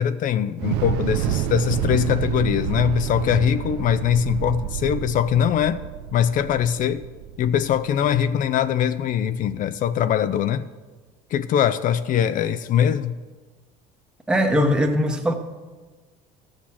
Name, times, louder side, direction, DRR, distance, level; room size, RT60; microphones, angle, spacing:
voice 1, 0.0-5.8 6.1-7.1 7.4-10.7 11.3-13.2, left 9 dB, 50° left, 13 dB, 0.5 m, -22 dB
Thunder / Explosion, 0.6-8.8, right 12 dB, 75° right, 0.5 m, -29 dB
voice 2, 14.3-15.3, equal, 5° right, 2 dB, 1.1 m, -20 dB
13.0 x 6.5 x 5.8 m, 1.3 s
supercardioid pair, 100°, 18 cm